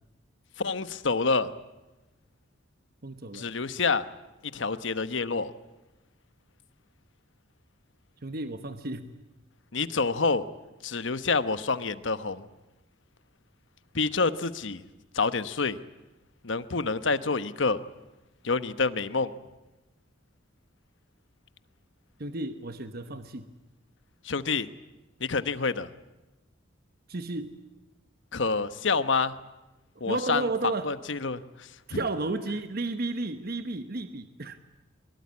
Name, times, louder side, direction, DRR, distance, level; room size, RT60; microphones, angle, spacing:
voice 1, 0.6-1.5 3.3-4.0 4.5-5.5 9.7-10.4 10.8-12.4 13.9-14.8 15.1-15.8 16.4-17.8 18.4-19.3 24.2-24.7 25.2-25.9 28.3-29.3 30.0-30.4 30.8-32.0, left 4 dB, 70° left, 13 dB, 1.1 m, -27 dB
voice 2, 3.0-3.5 8.2-9.1 22.2-23.5 27.1-27.6 30.1-30.9 31.9-34.6, right 2 dB, 50° right, 9 dB, 1.1 m, -33 dB
23.0 x 21.5 x 9.6 m, 1.0 s
head